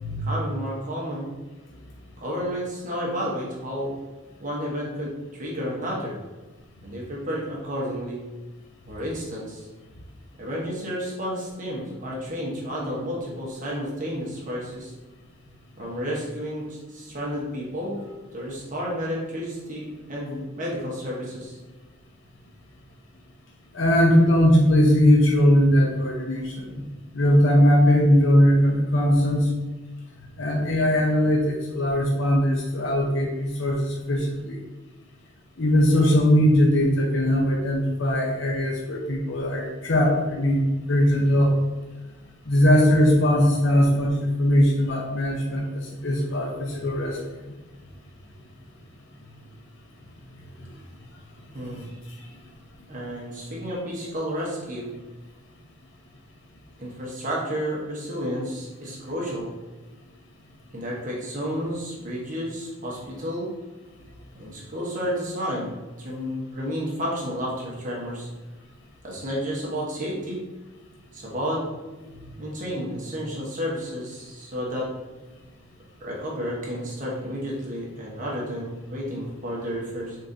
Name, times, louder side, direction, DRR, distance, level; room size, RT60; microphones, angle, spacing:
voice 1, 0.2-1.3 2.2-3.9 4.4-6.2 6.8-8.2 8.9-9.7 10.4-14.9 15.8-18.0 18.3-21.6 51.5-51.9 52.9-54.9 56.8-59.5 60.7-63.5 64.3-65.7 66.0-68.3 69.0-70.4 71.1-71.6 72.4-74.9 76.0-80.2, equal, 40° right, -4 dB, 1.1 m, -31 dB
voice 2, 23.7-26.8 27.1-29.5 30.4-34.6 35.6-40.6 40.9-41.6 42.5-47.2, equal, 75° left, -1 dB, 0.7 m, -20 dB
5.2 x 3.8 x 2.7 m, 1.2 s
head